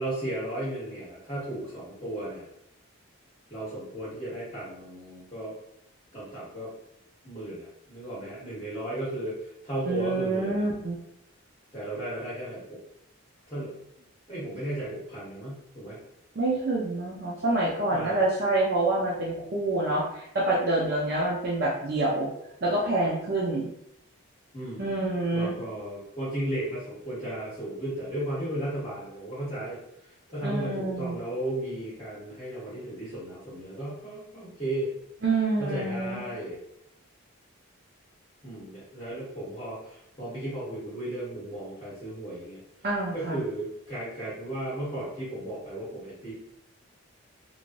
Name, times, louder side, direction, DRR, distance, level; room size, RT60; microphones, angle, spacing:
voice 1, 0.0-2.4 3.5-5.5 6.1-6.7 7.2-9.3 9.6-10.7 11.7-12.8 13.5-13.7 14.3-16.0 17.9-18.3 24.5-29.8 30.3-34.9 35.6-36.6 38.4-42.6 43.1-46.3, right 1 dB, 25° left, -10 dB, 1.1 m, -35 dB
voice 2, 9.9-11.0 16.4-22.3 22.6-23.7 24.8-25.6 30.4-31.2 35.2-36.3 42.8-43.4, right 2 dB, 45° right, -4 dB, 0.5 m, -27 dB
3.1 x 2.7 x 2.5 m, 0.78 s
head